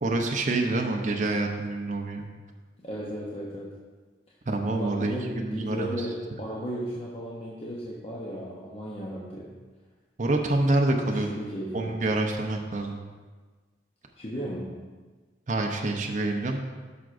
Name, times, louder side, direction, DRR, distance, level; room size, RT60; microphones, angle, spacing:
voice 1, 0.0-2.2 4.5-6.1 10.2-11.3 11.7-13.0 15.5-16.6, right 2 dB, 45° right, 2 dB, 0.6 m, -27 dB
voice 2, 2.8-3.7 4.6-9.5 11.0-12.0 14.2-14.7, equal, 35° left, -5 dB, 0.8 m, -35 dB
11.0 x 5.9 x 2.5 m, 1.4 s
head